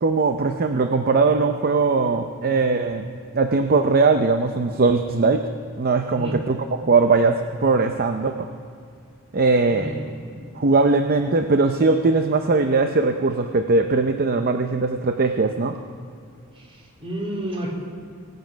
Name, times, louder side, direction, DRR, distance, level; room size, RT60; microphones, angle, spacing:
voice 1, 0.0-3.0 3.3-5.4 5.8-6.6 6.9-8.5 9.3-10.0 10.6-15.7, right 3 dB, 45° right, 6 dB, 0.6 m, -20 dB
voice 2, 9.6-10.6 16.6-17.7, right 1 dB, 25° right, -2 dB, 2.9 m, -32 dB
24.0 x 8.2 x 5.2 m, 2.2 s
head